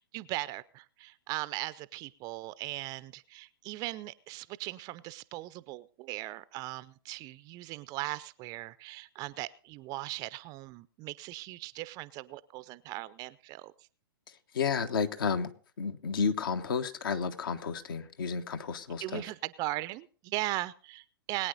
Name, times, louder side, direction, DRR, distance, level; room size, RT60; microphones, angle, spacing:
voice 1, 0.0-13.7 19.0-21.5, right 19 dB, 30° right, 0.5 m, -38 dB
voice 2, 14.3-15.5 15.8-19.2, left 6 dB, 60° left, 1.3 m, -32 dB
21.0 x 9.2 x 3.9 m
figure-of-eight pair, 115°, 13 cm